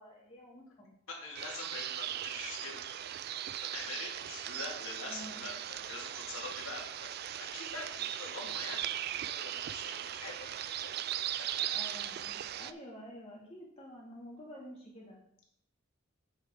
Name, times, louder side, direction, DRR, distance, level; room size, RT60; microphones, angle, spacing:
voice 1, 0.0-0.9 3.8-4.1 5.0-5.4 11.7-15.2, equal, 25° left, -4 dB, 2.5 m, -49 dB
voice 2, 1.1-3.1 3.6-10.9 11.3-11.8, left 3 dB, 70° left, -1 dB, 2.4 m, -45 dB
sound 1, 1.3-12.7, right 11 dB, 50° right, 0.3 m, -38 dB
8.1 x 8.1 x 3.8 m, 0.67 s
head